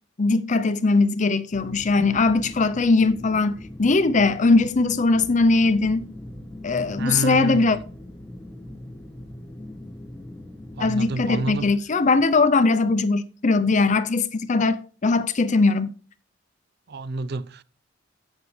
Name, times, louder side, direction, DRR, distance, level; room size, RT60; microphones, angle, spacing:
voice 1, 0.2-6.0 6.6-7.8 10.8-15.9, left 3 dB, 40° left, 0.6 m, -20 dB
sound 1, 1.5-11.8, left 1 dB, 10° left, 1.5 m, -41 dB
voice 2, 7.0-7.8 10.8-11.7 16.9-17.6, right 2 dB, 60° right, 0.5 m, -29 dB
12.0 x 8.3 x 3.2 m
head